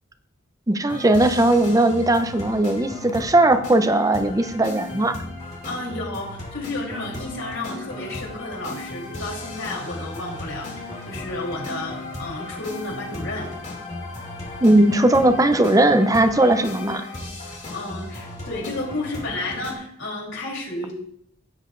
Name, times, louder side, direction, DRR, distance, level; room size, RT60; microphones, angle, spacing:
voice 1, 0.7-5.2 14.6-17.1, right 1 dB, 20° right, 8 dB, 0.6 m, -18 dB
sound 1, 0.9-19.7, left 2 dB, 40° left, 2.5 m, -36 dB
voice 2, 5.6-13.5 17.4-20.9, left 2 dB, 80° left, -1 dB, 3.3 m, -32 dB
15.5 x 7.8 x 2.5 m, 0.71 s
head